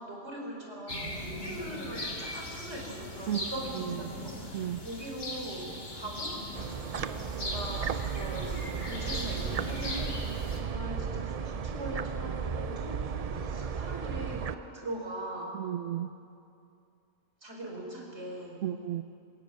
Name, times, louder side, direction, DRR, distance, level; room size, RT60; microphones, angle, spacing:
voice 1, 0.0-6.4 7.0-15.6 17.4-18.6, right 1 dB, 65° right, 0 dB, 4.5 m, -41 dB
sound 1, 0.9-10.6, left 1 dB, 70° left, 3.7 m, -39 dB
voice 2, 3.7-4.1 4.5-4.8 15.5-16.1 18.6-19.0, right 11 dB, 85° right, 10 dB, 1.1 m, -33 dB
sound 2, 6.5-14.5, right 6 dB, 45° right, 0.5 m, -34 dB
20.5 x 16.0 x 9.6 m, 2.6 s
omnidirectional pair, 1.2 m